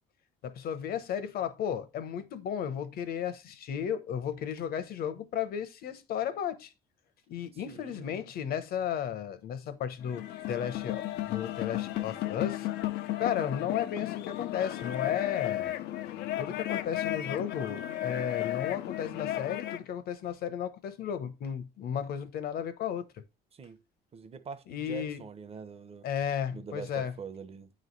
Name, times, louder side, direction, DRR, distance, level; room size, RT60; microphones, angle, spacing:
voice 1, 0.4-6.7 7.3-12.7 13.2-15.7 16.4-23.1 24.7-25.2 26.0-27.1, left 8 dB, 65° left, 0.9 m, -34 dB
voice 2, 7.5-8.1 23.5-23.8 24.1-26.1 26.5-27.7, right 6 dB, 35° right, 0.8 m, -44 dB
sound 1, 10.0-19.9, left 14 dB, 80° left, 0.6 m, -34 dB
9.2 x 3.2 x 3.9 m
cardioid pair, 110°, 17 cm